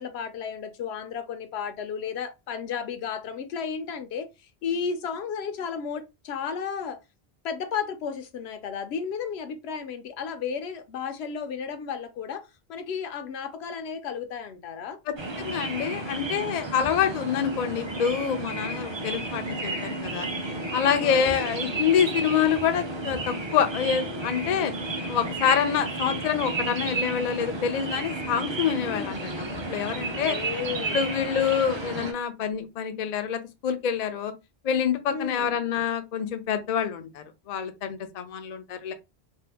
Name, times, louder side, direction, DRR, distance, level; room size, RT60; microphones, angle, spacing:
voice 1, 0.0-4.3 4.6-7.0 7.4-15.0 16.8-16.9 21.0-21.3 28.9-29.3 30.1-31.0 35.1-35.5, left 6 dB, 80° left, 0.8 m, -33 dB
voice 2, 15.1-20.3 20.7-24.7 25.1-29.3 29.7-30.4 30.9-34.3 34.6-38.9, left 8 dB, 55° left, 0.5 m, -26 dB
sound 1, 15.2-32.1, right 2 dB, 35° right, 0.4 m, -32 dB
2.7 x 2.2 x 3.3 m
omnidirectional pair, 1.1 m